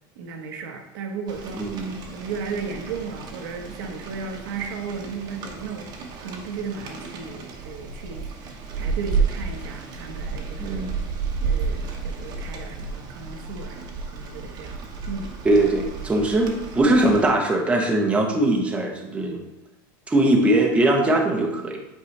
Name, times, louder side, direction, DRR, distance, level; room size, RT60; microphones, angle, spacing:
voice 1, 0.2-1.7 2.1-5.9 6.2-10.9 11.4-15.4, right 5 dB, 80° right, 4 dB, 1.1 m, -35 dB
Rain, 1.3-17.3, right 5 dB, 35° right, 1.0 m, -32 dB
voice 2, 1.6-1.9 10.6-10.9 15.4-19.4 20.1-21.8, right 1 dB, 10° right, 1 dB, 0.8 m, -21 dB
8.4 x 4.5 x 3.2 m, 0.93 s
supercardioid pair, 150°, 11 cm